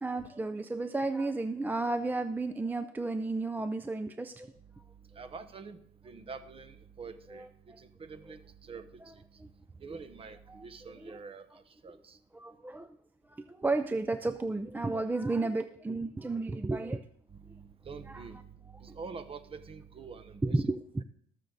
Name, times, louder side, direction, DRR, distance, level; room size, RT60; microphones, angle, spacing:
voice 1, 0.0-4.5 9.4-9.5 10.5-10.6 12.3-13.0 13.3-17.0 18.1-18.2 18.9-19.0 20.4-20.8, right 2 dB, 10° right, 0.4 m, -32 dB
voice 2, 5.1-7.5 7.8-9.2 9.8-12.2 17.3-18.5 18.8-20.6, right 5 dB, 35° right, 1.2 m, -46 dB
19.5 x 6.7 x 4.0 m
cardioid pair, 110°, 17 cm